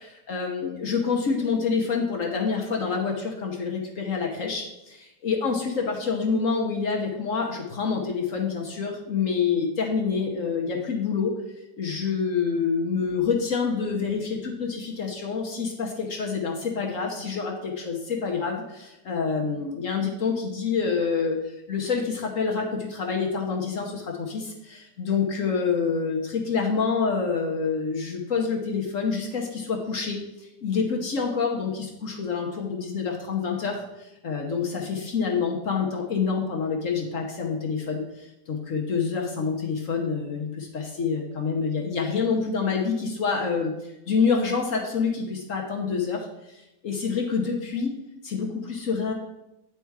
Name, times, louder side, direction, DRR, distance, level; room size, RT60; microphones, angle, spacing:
voice 1, 0.0-11.3 11.8-47.9 48.2-49.1, left 5 dB, 55° left, 1 dB, 1.2 m, -27 dB
8.7 x 4.5 x 4.6 m, 0.91 s
omnidirectional pair, 1.8 m